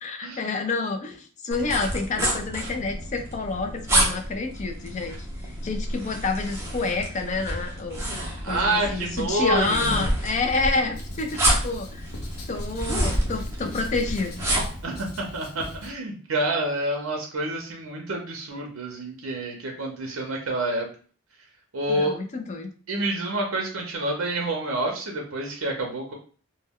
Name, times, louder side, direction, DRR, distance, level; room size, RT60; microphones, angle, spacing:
voice 1, 0.0-5.2 5.4-8.0 8.5-12.1 12.5-14.3 21.9-22.7, left 3 dB, 35° left, 5 dB, 0.3 m, -28 dB
sound 1, 1.5-14.8, right 1 dB, 10° right, 0.6 m, -29 dB
voice 2, 8.4-10.1 14.8-20.9 21.7-22.2 22.9-26.1, right 1 dB, 65° right, 1 dB, 0.5 m, -28 dB
Writing, 10.9-15.9, left 1 dB, 85° left, 0.6 m, -41 dB
2.1 x 2.1 x 3.4 m, 0.41 s
head